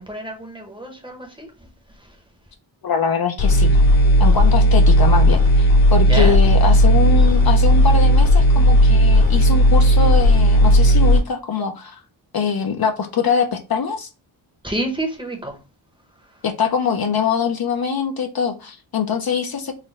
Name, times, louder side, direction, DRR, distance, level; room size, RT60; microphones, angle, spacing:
voice 1, 0.0-1.7 2.0-2.2 6.1-6.5 14.6-15.6, right 1 dB, 10° right, 0.8 m, -29 dB
voice 2, 2.8-3.8 4.2-12.0 12.3-14.1 16.4-19.7, left 6 dB, 50° left, 0.5 m, -23 dB
sound 1, 3.4-11.2, equal, 65° left, 1.6 m, -14 dB
3.9 x 2.1 x 4.0 m
wide cardioid pair, 135°, 47 cm